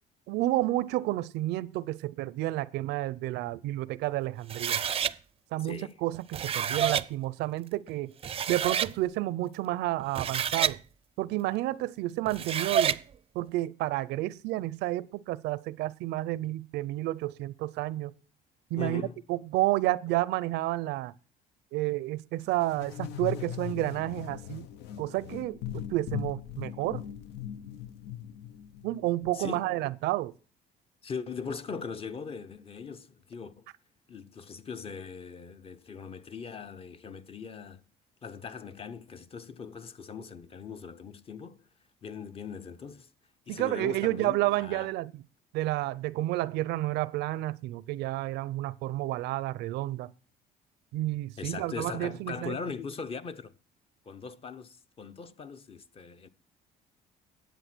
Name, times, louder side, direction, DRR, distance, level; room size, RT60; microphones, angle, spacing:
voice 1, 0.3-4.8 5.5-8.1 8.5-10.8 11.2-13.0 13.3-18.1 18.7-21.1 21.7-24.7 25.0-25.6 25.9-27.0 28.8-30.3 43.5-45.2 45.5-50.1 50.9-52.6, right 16 dB, 85° right, 0.6 m, -30 dB
sound 1, 4.5-5.1 6.1-7.1 7.9-8.0 8.2-8.9 10.0-10.8 12.3-13.0, right 8 dB, 35° right, 0.5 m, -28 dB
voice 2, 5.6-6.0 18.8-19.2 29.3-29.8 31.0-33.7 34.1-37.8 38.2-41.7 42.0-43.1 43.5-44.9 51.4-53.5 54.1-56.3, left 5 dB, 35° left, 0.8 m, -40 dB
sound 2, 22.5-29.3, left 11 dB, 85° left, 0.8 m, -39 dB
10.5 x 7.9 x 6.0 m
cardioid pair, 110°, 17 cm